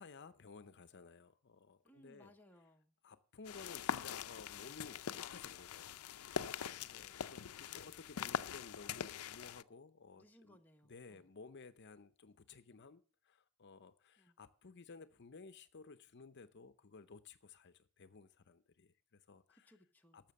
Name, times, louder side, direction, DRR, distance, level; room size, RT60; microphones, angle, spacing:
voice 1, 0.0-2.3 3.0-10.6 10.8-19.7 20.1-20.3, left 4 dB, 55° left, 12 dB, 0.7 m, -56 dB
voice 2, 1.8-2.9 7.6-7.9 10.1-11.3 14.2-14.4 19.5-20.3, equal, 10° left, 3 dB, 1.0 m, -65 dB
sound 1, 3.4-9.6, left 8 dB, 90° left, 0.5 m, -43 dB
12.5 x 7.3 x 6.8 m, 0.40 s
head